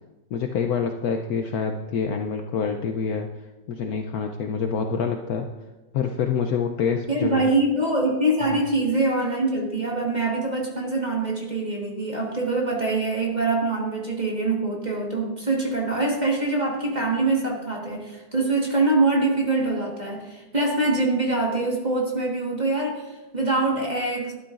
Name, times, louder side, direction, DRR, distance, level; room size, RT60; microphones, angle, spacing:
voice 1, 0.3-3.3 3.7-5.5 5.9-7.5 8.5-8.6, left 6 dB, 70° left, 4 dB, 0.9 m, -26 dB
voice 2, 7.1-24.3, right 2 dB, 25° right, -1 dB, 1.4 m, -24 dB
12.5 x 11.5 x 2.5 m, 1.1 s
omnidirectional pair, 2.0 m